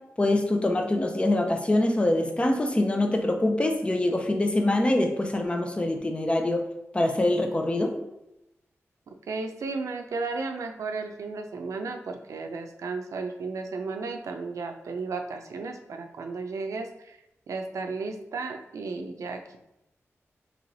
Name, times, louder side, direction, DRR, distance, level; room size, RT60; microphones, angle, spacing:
voice 1, 0.2-6.6 6.9-7.9, left 1 dB, 20° left, 4 dB, 0.6 m, -24 dB
voice 2, 9.1-17.2 17.5-19.4, right 4 dB, 85° right, 5 dB, 0.4 m, -34 dB
3.1 x 3.0 x 3.8 m, 0.88 s
wide cardioid pair, 80°, 5 cm